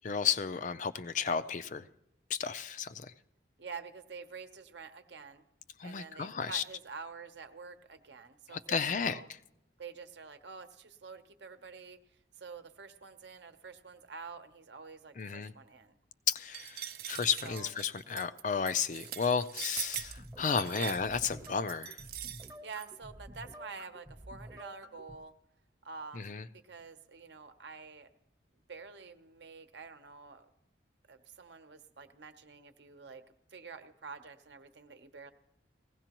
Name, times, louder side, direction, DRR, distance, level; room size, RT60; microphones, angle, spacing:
voice 1, 0.0-1.9 2.3-3.1 5.8-6.6 8.5-9.2 15.2-15.5 16.3-22.0 26.1-26.5, left 6 dB, 40° left, 11 dB, 0.4 m, -33 dB
voice 2, 3.6-5.4 5.8-8.6 9.0-9.3 9.8-12.0 12.4-15.9 17.4-17.7 20.8-20.9 22.6-25.3 25.8-28.1 28.7-30.5 31.1-33.2 33.5-35.3, right 5 dB, 70° right, 8 dB, 0.9 m, -48 dB
sound 1, 16.5-22.9, right 11 dB, 50° right, 0.5 m, -42 dB
sound 2, 20.0-25.2, equal, 15° right, 0.7 m, -50 dB
19.5 x 16.0 x 3.0 m, 0.82 s
head